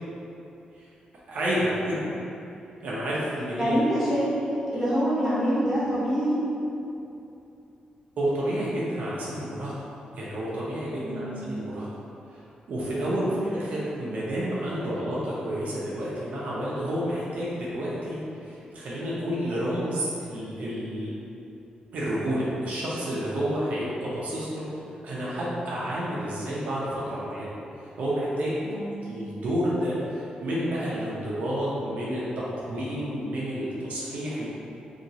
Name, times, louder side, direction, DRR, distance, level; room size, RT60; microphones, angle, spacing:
voice 1, 1.3-2.0 2.8-3.8 8.2-9.7 10.1-11.9 12.3-12.4 12.7-21.1 21.9-24.7 25.0-27.5 27.8-28.6 29.1-34.5, equal, 75° right, -7 dB, 0.6 m, -30 dB
voice 2, 3.6-4.3 4.7-6.4 11.0-11.4 13.2-13.6 28.6-29.0, equal, 5° right, -12 dB, 1.2 m, -26 dB
2.8 x 2.8 x 2.7 m, 2.8 s
cardioid pair, 105°, 3 cm